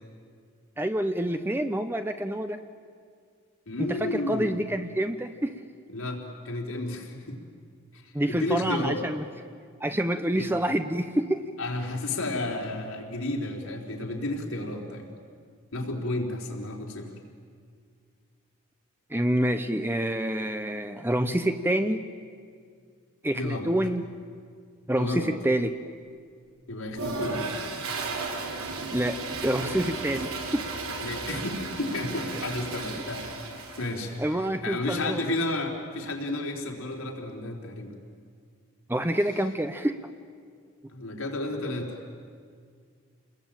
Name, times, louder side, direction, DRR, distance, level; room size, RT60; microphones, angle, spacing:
voice 1, 0.8-2.6 3.8-5.5 8.1-9.2 9.8-11.4 19.1-22.1 23.2-24.1 24.9-25.8 28.9-30.7 34.2-35.2 38.9-40.0, right 1 dB, 10° right, 8 dB, 0.7 m, -27 dB
voice 2, 3.7-4.6 5.9-7.4 8.3-9.0 10.4-10.5 11.6-15.1 15.7-17.1 23.3-23.7 25.0-25.3 26.7-27.4 31.0-33.3 33.8-37.9 40.9-42.0, left 2 dB, 80° left, 0 dB, 4.1 m, -32 dB
Toilet flush, 26.9-34.2, right 3 dB, 85° right, 3.3 m, -34 dB
29.0 x 21.0 x 9.0 m, 2.1 s
head